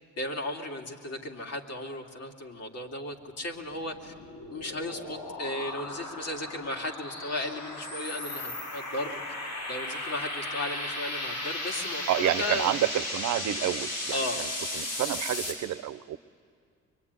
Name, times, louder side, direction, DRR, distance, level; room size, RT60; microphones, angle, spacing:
voice 1, 0.2-4.1 4.5-9.2 9.7-12.7 14.1-14.4, left 1 dB, 55° left, 2 dB, 2.9 m, -35 dB
sound 1, 3.5-15.5, left 1 dB, 85° left, 7.5 m, -36 dB
voice 2, 12.1-14.5 14.7-16.2, right 13 dB, 70° right, 14 dB, 0.8 m, -29 dB
24.0 x 23.5 x 9.7 m, 2.3 s
cardioid pair, 90°, 30 cm